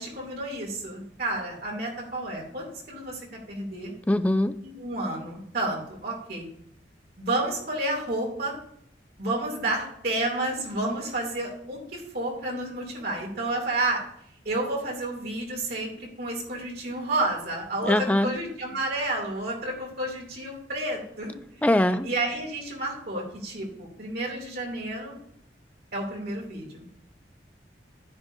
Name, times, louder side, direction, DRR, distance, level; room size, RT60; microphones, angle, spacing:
voice 1, 0.0-3.9 4.6-6.4 7.2-8.5 9.2-14.0 14.4-21.3 22.0-25.1 25.9-26.9, right 2 dB, 55° right, -1 dB, 2.8 m, -30 dB
voice 2, 4.1-4.5 17.9-18.3 21.6-22.1, left 1 dB, 10° left, 11 dB, 0.3 m, -22 dB
10.5 x 9.5 x 2.7 m, 0.69 s
head